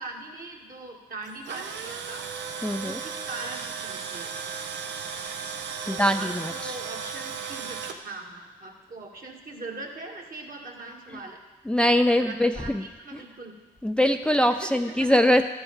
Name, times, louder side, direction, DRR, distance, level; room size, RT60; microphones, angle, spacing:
voice 1, 0.0-2.2 2.8-4.5 5.8-11.4 12.1-13.5 14.6-15.5, right 3 dB, 50° right, 0 dB, 2.2 m, -41 dB
Tools, 1.2-8.0, right 6 dB, 80° right, 0.8 m, -35 dB
voice 2, 2.6-3.0 5.9-6.8 11.7-12.8 13.1-13.2 13.8-15.5, left 1 dB, 5° left, 8 dB, 0.4 m, -22 dB
12.5 x 4.7 x 7.2 m, 1.3 s
supercardioid pair, 55°, 18 cm